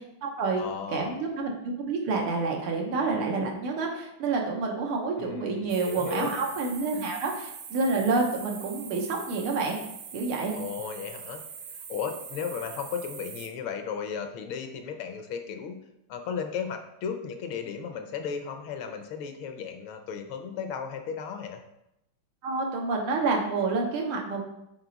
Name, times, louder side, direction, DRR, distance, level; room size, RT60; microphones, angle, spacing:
voice 1, 0.0-0.6 0.9-9.8 10.1-10.5 22.4-24.4, right 3 dB, 90° right, 1 dB, 1.9 m, -28 dB
voice 2, 0.6-1.2 5.2-6.3 6.9-7.1 10.5-11.4 11.9-15.8 16.1-21.6, left 6 dB, 75° left, 6 dB, 1.5 m, -35 dB
sound 1, 5.7-13.5, right 7 dB, 65° right, 1.1 m, -43 dB
5.9 x 4.1 x 3.9 m, 0.84 s
omnidirectional pair, 2.3 m